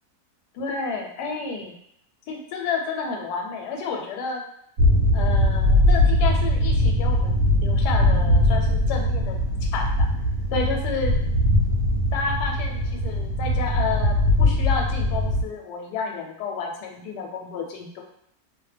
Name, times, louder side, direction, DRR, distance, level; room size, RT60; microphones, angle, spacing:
voice 1, 0.5-1.7 2.3-4.4 5.1-10.1 10.5-11.1 12.1-18.0, left 4 dB, 90° left, 1 dB, 1.2 m, -31 dB
sound 1, 4.8-15.4, left 1 dB, 75° right, 1.1 m, -21 dB
2.7 x 2.1 x 3.2 m, 0.73 s
omnidirectional pair, 1.7 m